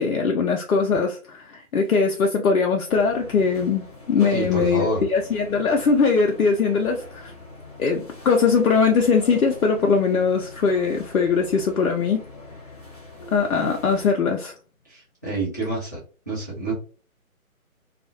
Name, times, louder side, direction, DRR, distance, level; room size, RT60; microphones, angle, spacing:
voice 1, 0.0-7.3 7.8-12.3 13.3-14.5, left 5 dB, 75° left, 0.6 m, -21 dB
sound 1, 2.9-14.1, left 1 dB, 30° left, 0.6 m, -42 dB
voice 2, 4.3-5.0 14.9-16.0 16.3-16.7, right 2 dB, 15° right, 0.6 m, -27 dB
2.4 x 2.0 x 2.6 m
figure-of-eight pair, 150°, 43 cm